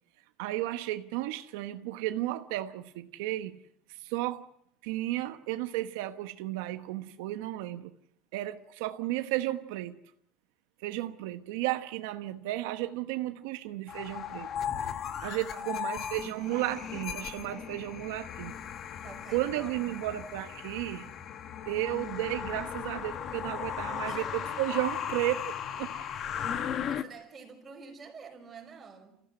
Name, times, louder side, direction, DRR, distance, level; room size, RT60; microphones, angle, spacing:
voice 1, 0.4-3.6 3.9-4.5 4.8-7.9 8.3-10.0 10.8-14.5 15.2-18.6 19.3-21.1 21.7-26.1, right 15 dB, 90° right, 1.1 m, -33 dB
sound 1, 13.9-27.0, left 8 dB, 35° left, 1.2 m, -37 dB
voice 2, 15.5-16.0 19.0-20.1 24.0-24.3 26.6-29.2, right 5 dB, 20° right, 5.8 m, -49 dB
29.0 x 15.5 x 7.8 m
cardioid pair, 160°, 0 cm